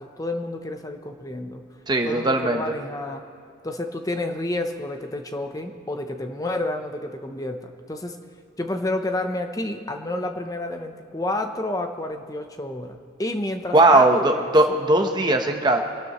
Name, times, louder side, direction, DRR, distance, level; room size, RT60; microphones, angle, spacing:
voice 1, 0.0-1.6 2.0-3.3 3.6-8.2 8.6-14.5, left 1 dB, 15° left, 5 dB, 0.8 m, -30 dB
voice 2, 1.9-2.6 13.7-15.8, right 2 dB, 20° right, 4 dB, 1.0 m, -18 dB
24.5 x 12.0 x 3.1 m, 2.4 s
head